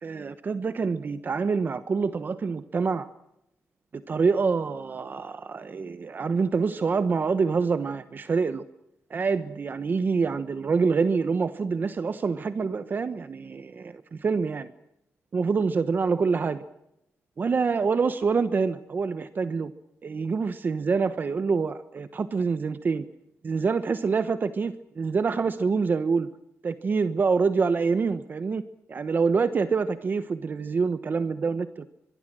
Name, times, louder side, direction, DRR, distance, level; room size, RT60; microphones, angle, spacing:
voice 1, 0.0-3.1 3.9-8.6 9.1-14.7 15.3-16.6 17.4-19.7 20.0-23.1 23.4-26.3 26.6-28.6 28.9-31.9, right 5 dB, 40° right, 11 dB, 1.1 m, -26 dB
24.0 x 23.5 x 7.7 m, 0.82 s
wide cardioid pair, 160°, 5 cm